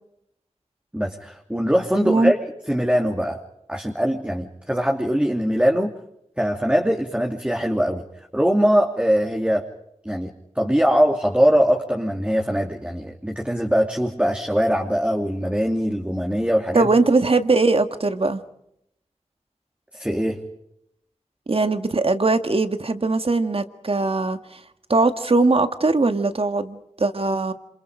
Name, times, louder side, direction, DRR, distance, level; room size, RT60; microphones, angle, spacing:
voice 1, 0.9-2.4 2.7-3.4 3.7-5.9 6.4-9.7 10.0-16.9 19.9-20.4, equal, 10° right, 2.8 m, -22 dB
voice 2, 16.7-18.4 21.5-24.4 24.9-27.5, right 3 dB, 50° right, 1.9 m, -20 dB
28.0 x 27.0 x 5.1 m
wide cardioid pair, 50°, 12 cm